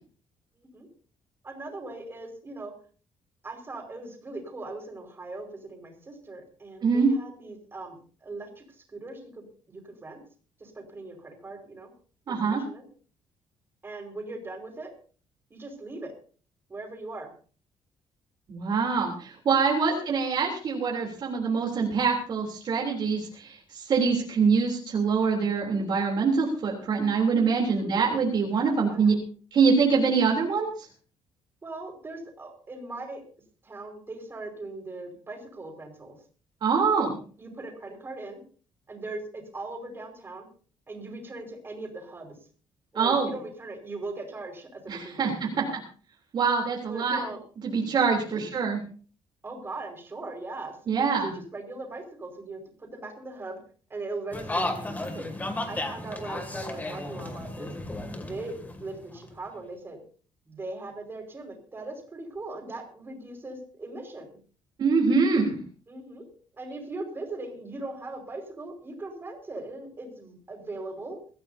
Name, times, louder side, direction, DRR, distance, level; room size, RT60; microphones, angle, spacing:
voice 1, 0.5-0.9 1.4-2.7 3.4-10.2 10.6-11.9 12.3-12.9 13.8-14.9 15.5-16.1 16.7-17.3 19.9-20.1 27.8-28.1 28.8-29.2 31.6-33.2 33.6-36.2 37.4-38.4 38.9-40.5 40.9-42.4 42.9-45.8 46.9-47.4 48.3-48.4 49.4-53.6 53.9-55.3 55.7-57.7 58.1-60.0 60.5-64.4 65.9-66.3 66.6-71.2, right 2 dB, 25° right, 2 dB, 5.3 m, -40 dB
voice 2, 6.8-7.1 12.3-12.6 18.5-29.1 29.5-30.9 36.6-37.2 43.0-43.3 44.9-45.3 46.3-47.2 47.6-48.8 50.9-51.3 64.8-65.6, right 5 dB, 50° right, -1 dB, 3.4 m, -24 dB
sound 1, 54.3-59.4, left 2 dB, 15° left, 2.4 m, -34 dB
23.5 x 14.5 x 2.8 m, 0.41 s
cardioid pair, 145°, 10 cm